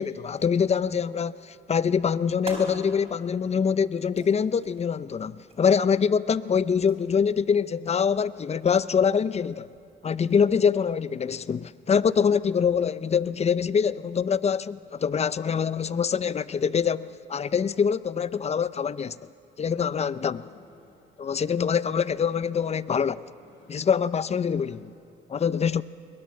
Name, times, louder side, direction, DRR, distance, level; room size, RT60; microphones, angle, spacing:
voice 1, 0.0-9.7 10.0-19.3 19.6-20.5 21.2-23.2 23.7-24.9 25.3-25.8, left 6 dB, 35° left, 0.6 m, -24 dB
sound 1, 2.3-12.2, right 2 dB, 30° right, 4.7 m, -48 dB
sound 2, 20.0-25.0, left 2 dB, 80° left, 7.6 m, -56 dB
22.0 x 20.5 x 7.7 m
cardioid pair, 90°, 20 cm